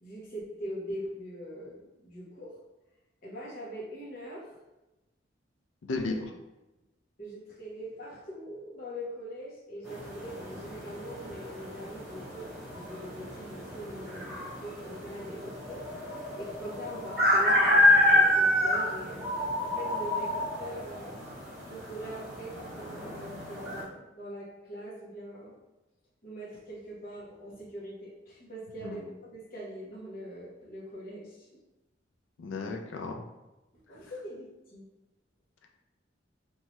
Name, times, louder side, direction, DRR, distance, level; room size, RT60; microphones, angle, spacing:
voice 1, 0.0-2.5 3.2-4.5 6.0-6.2 7.2-12.5 12.7-15.8 16.3-19.3 19.6-21.2 21.7-25.6 26.2-31.6 33.9-34.8, equal, 50° left, -5 dB, 0.9 m, -42 dB
voice 2, 5.8-6.2 28.8-29.0 32.4-33.2, left 3 dB, 80° left, 3 dB, 0.4 m, -34 dB
sound 1, 9.8-23.8, left 1 dB, ahead, 0.8 m, -28 dB
2.7 x 2.3 x 3.0 m, 1.0 s
head